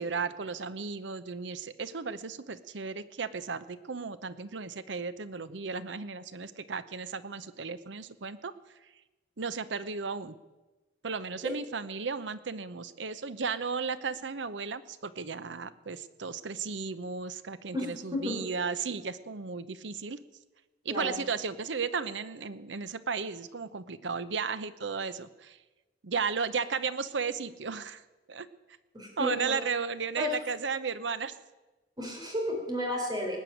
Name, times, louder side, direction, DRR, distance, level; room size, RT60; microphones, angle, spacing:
voice 1, 0.0-8.5 9.4-10.3 11.0-20.2 20.8-25.6 26.0-28.0 28.3-28.5 29.2-31.3, right 5 dB, 80° right, 14 dB, 0.8 m, -34 dB
voice 2, 17.7-18.3 20.9-21.2 28.9-29.5 30.2-30.3 32.0-33.4, left 1 dB, 25° right, 1 dB, 4.1 m, -32 dB
19.0 x 6.8 x 9.1 m, 1.1 s
head